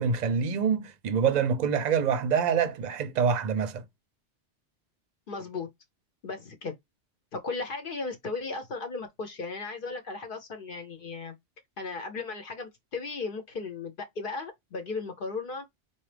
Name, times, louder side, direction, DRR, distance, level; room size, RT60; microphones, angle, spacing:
voice 1, 0.0-3.8, right 6 dB, 50° right, 0.6 m, -26 dB
voice 2, 5.3-5.7 6.2-6.8 7.3-11.3 11.8-15.6, left 4 dB, 55° left, 0.9 m, -36 dB
4.1 x 2.4 x 3.3 m
omnidirectional pair, 1.1 m